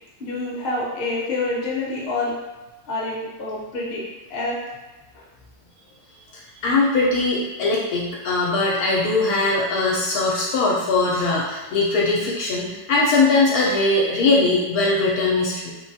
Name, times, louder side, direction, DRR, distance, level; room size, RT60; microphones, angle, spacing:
voice 1, 0.2-2.4 2.9-4.0 4.3-4.6 5.1-5.2, left 2 dB, 50° left, -4 dB, 0.7 m, -27 dB
voice 2, 6.6-15.7, left 3 dB, 70° left, -3 dB, 1.0 m, -20 dB
3.3 x 2.2 x 2.6 m, 1.1 s
omnidirectional pair, 1.7 m